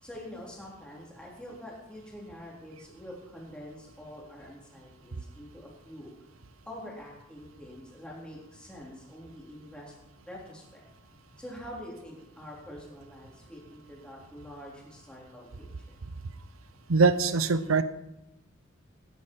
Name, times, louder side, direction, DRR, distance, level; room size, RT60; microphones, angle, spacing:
voice 1, 0.0-6.1 6.7-9.9 10.3-10.8 11.4-15.5 15.9-16.0, equal, 5° left, -4 dB, 3.5 m, -45 dB
voice 2, 16.9-17.8, right 4 dB, 80° right, 13 dB, 0.8 m, -22 dB
16.5 x 10.5 x 4.6 m, 0.91 s
head